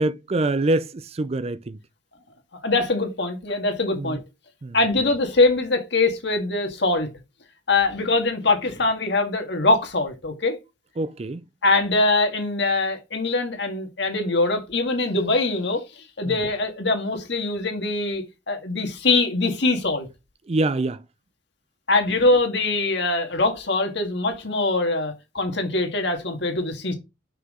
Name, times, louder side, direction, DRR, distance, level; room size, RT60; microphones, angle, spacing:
voice 1, 0.0-1.8 4.0-4.2 4.6-4.8 11.0-11.4 16.2-16.4 20.5-21.0, right 2 dB, 35° right, 0.4 m, -25 dB
voice 2, 2.6-4.2 4.7-7.1 7.7-10.6 11.6-20.1 21.9-26.9, left 2 dB, 65° left, 1.8 m, -23 dB
6.0 x 5.6 x 3.8 m
head